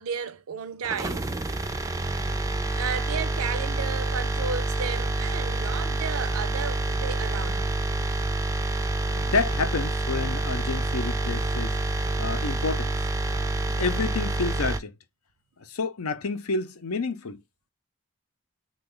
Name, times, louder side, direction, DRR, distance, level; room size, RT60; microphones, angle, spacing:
voice 1, 0.0-1.4 2.7-7.7, right 6 dB, 75° right, 0.5 m, -33 dB
sound 1, 0.8-14.8, right 2 dB, 15° right, 0.4 m, -27 dB
voice 2, 9.0-11.8 12.2-12.9 13.7-14.9 15.6-17.4, left 4 dB, 80° left, 0.7 m, -29 dB
3.3 x 2.4 x 3.7 m
head